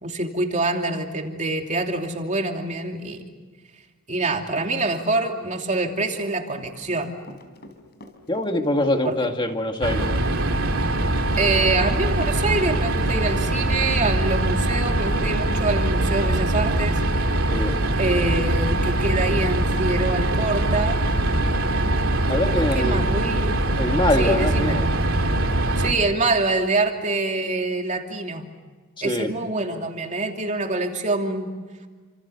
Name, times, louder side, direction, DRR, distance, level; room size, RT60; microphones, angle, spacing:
voice 1, 0.0-3.2 4.1-7.1 9.0-9.3 11.4-17.3 18.0-21.0 22.5-23.6 24.2-24.8 25.8-28.5 29.0-31.5, right 2 dB, 35° right, 3 dB, 2.9 m, -25 dB
Run, 6.1-7.7 8.0-16.8, left 1 dB, 50° left, 4.2 m, -43 dB
voice 2, 8.3-10.1 17.5-17.8 22.3-23.1 23.8-24.9 29.0-29.3, left 1 dB, 20° left, 4 dB, 2.0 m, -23 dB
sound 1, 9.8-25.9, right 1 dB, 70° right, 2.9 m, -22 dB
30.0 x 27.5 x 6.9 m, 1.4 s
head